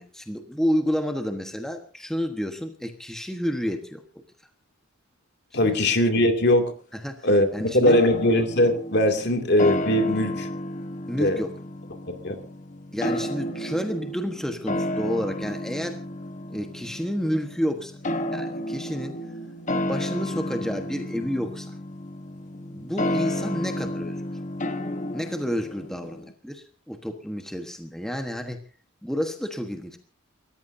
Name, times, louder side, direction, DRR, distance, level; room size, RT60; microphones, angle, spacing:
voice 1, 0.0-4.0 5.6-5.8 6.9-8.0 11.1-11.5 12.9-16.0 16.5-18.0 18.3-19.1 19.8-21.7 22.7-24.2 25.1-28.6 29.0-30.0, equal, ahead, 4 dB, 1.3 m, -30 dB
voice 2, 5.5-6.7 7.2-7.5 7.7-10.5 11.2-11.4 12.2-12.4, left 1 dB, 55° left, 5 dB, 2.5 m, -20 dB
sound 1, 7.9-26.3, left 1 dB, 35° left, 1.2 m, -32 dB
29.5 x 14.5 x 2.7 m, 0.36 s
head